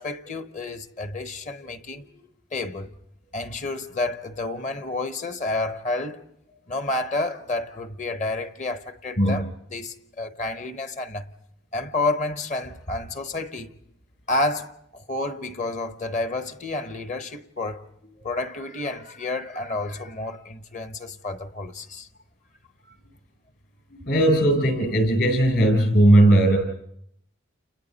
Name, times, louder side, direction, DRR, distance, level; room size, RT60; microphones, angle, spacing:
voice 1, 0.0-2.2 2.5-2.9 3.3-6.2 6.7-11.3 11.7-13.7 14.3-17.8 18.2-22.1, left 2 dB, 35° left, 1.0 m, -30 dB
voice 2, 23.9-26.6, right 1 dB, 55° left, 7.8 m, -18 dB
30.0 x 29.5 x 4.1 m
head